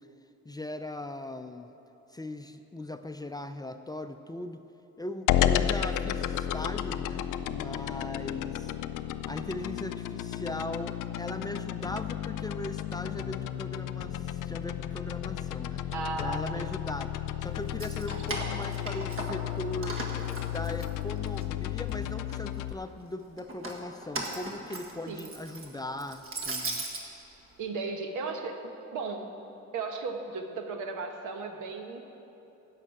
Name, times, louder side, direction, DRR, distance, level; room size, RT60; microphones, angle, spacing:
voice 1, 0.4-1.7 2.1-4.6 5.0-8.7 9.3-15.8 16.2-20.0 20.4-26.8, left 1 dB, 15° left, 8 dB, 0.5 m, -39 dB
sound 1, 5.3-22.7, left 11 dB, 85° left, 0.5 m, -32 dB
voice 2, 15.9-16.6 25.1-25.4 27.6-29.3 29.7-32.1, right 4 dB, 80° right, 5 dB, 1.2 m, -35 dB
Keys jangling, 17.6-19.5 19.8-21.4 21.9-22.6 23.4-27.0, right 2 dB, 45° right, 1.8 m, -37 dB
13.5 x 5.6 x 8.8 m, 3.0 s
cardioid pair, 90°, 30 cm